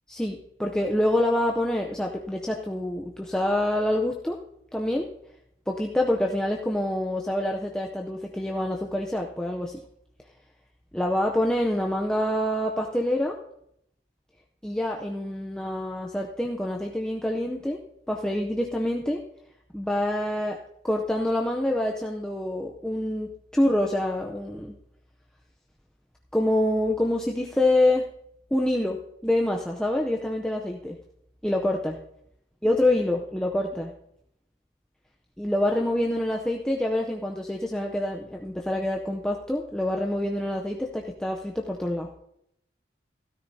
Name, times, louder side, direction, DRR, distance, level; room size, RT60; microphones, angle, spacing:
voice 1, 0.1-4.4 4.7-5.1 5.7-9.8 10.9-13.3 14.6-17.8 18.1-19.2 19.7-20.6 20.8-24.7 26.3-28.0 28.5-29.0 29.2-31.0 31.4-32.0 32.6-33.9 35.4-42.1, left 1 dB, 5° left, 0 dB, 0.5 m, -26 dB
13.0 x 13.0 x 2.7 m, 0.76 s
head